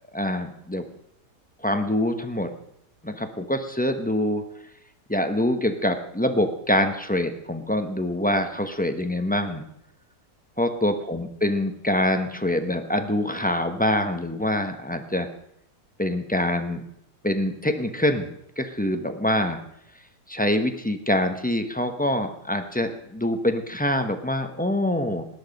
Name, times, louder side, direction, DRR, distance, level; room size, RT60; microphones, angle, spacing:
voice 1, 0.1-0.8 1.6-2.5 3.0-4.4 5.1-9.6 10.6-15.3 16.0-16.8 17.2-19.6 20.3-25.2, left 1 dB, 5° left, 6 dB, 0.7 m, -25 dB
17.0 x 10.5 x 5.3 m, 0.75 s
omnidirectional pair, 1.8 m